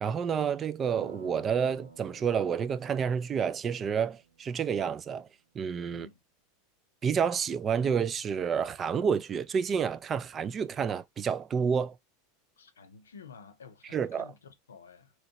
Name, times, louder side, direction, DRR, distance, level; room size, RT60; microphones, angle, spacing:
voice 1, 0.0-5.3 5.6-6.1 7.0-11.9 13.9-14.3, right 7 dB, 30° right, 0.3 m, -29 dB
sound 1, 0.9-5.2, right 4 dB, 80° right, 1.0 m, -53 dB
voice 2, 5.9-6.2 12.6-15.1, left 6 dB, 90° left, 0.7 m, -51 dB
3.0 x 3.0 x 2.8 m
hypercardioid pair, 95°, 0 cm